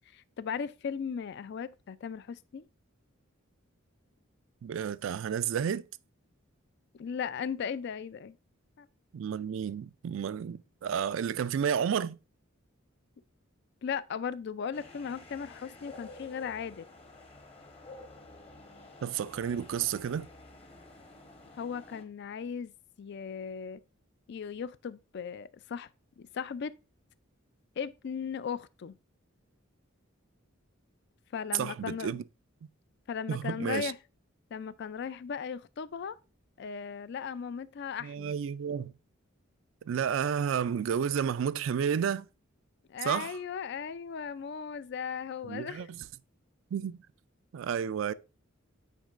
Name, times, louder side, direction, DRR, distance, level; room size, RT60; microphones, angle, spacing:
voice 1, 0.1-2.7 6.9-8.4 8.8-8.9 13.8-16.9 21.5-22.7 23.0-23.8 24.3-25.9 26.2-26.7 27.8-28.9 31.3-32.2 33.1-34.0 34.5-36.2 36.6-38.3 42.9-45.9, left 6 dB, 55° left, 0.3 m, -37 dB
voice 2, 4.6-5.9 9.1-12.2 19.0-20.3 31.5-32.2 33.3-33.9 38.0-38.9 39.9-42.3 43.0-43.4 45.4-46.0 46.7-47.0 47.5-48.1, right 8 dB, 65° right, 0.3 m, -31 dB
sound 1, 14.7-22.0, left 2 dB, 30° left, 0.9 m, -51 dB
9.2 x 4.4 x 2.5 m
head